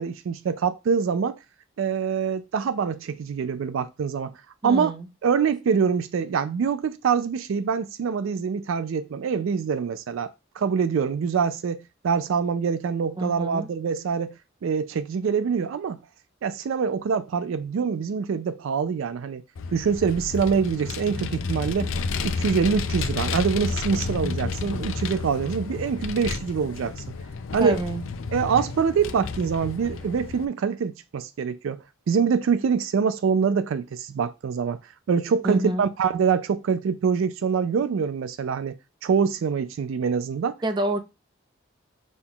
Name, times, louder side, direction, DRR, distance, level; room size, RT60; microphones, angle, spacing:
voice 1, 0.0-1.4 1.8-4.3 4.6-4.9 5.2-10.3 10.6-14.4 14.6-16.0 16.4-19.4 19.7-21.9 22.2-27.0 27.5-27.8 28.3-34.8 35.1-38.8 39.0-40.6, right 6 dB, 70° right, 0.4 m, -25 dB
voice 2, 4.6-5.1 13.2-13.7 27.6-28.0 35.4-35.9 40.6-41.0, right 1 dB, 20° right, 0.6 m, -27 dB
Vehicle, 19.6-30.4, left 4 dB, 75° left, 0.5 m, -31 dB
6.1 x 2.3 x 3.7 m
head